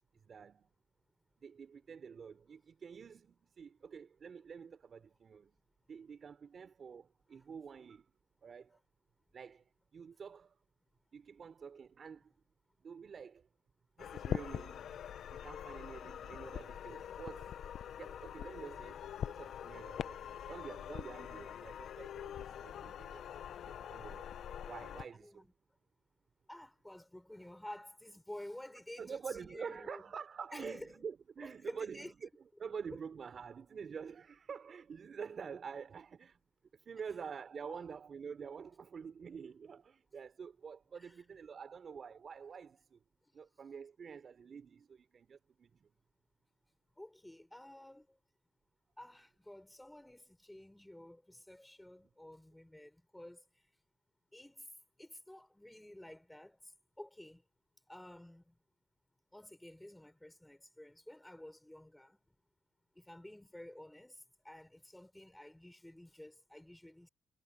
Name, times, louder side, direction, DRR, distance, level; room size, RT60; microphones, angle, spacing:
voice 1, 0.1-0.7 1.4-5.6 5.9-8.1 8.4-8.8 9.3-10.6 11.1-12.3 12.8-13.5 14.0-14.9 15.3-17.6 18.0-23.4 23.6-24.3 24.6-25.5 29.0-32.3 32.6-36.4 36.7-43.0 43.3-45.9, right 6 dB, 45° right, 3.6 m, -48 dB
sound 1, 14.0-25.1, left 9 dB, 65° left, 0.5 m, -44 dB
voice 2, 25.1-25.5 26.5-30.0 30.5-30.9 31.4-32.1 37.7-37.8 40.9-41.2 43.3-43.4 47.0-48.2 49.0-53.7 54.3-54.7 55.0-57.5 57.9-58.6 59.3-62.3 62.9-67.1, left 1 dB, 5° left, 4.7 m, -52 dB
cardioid pair, 90°, 0 cm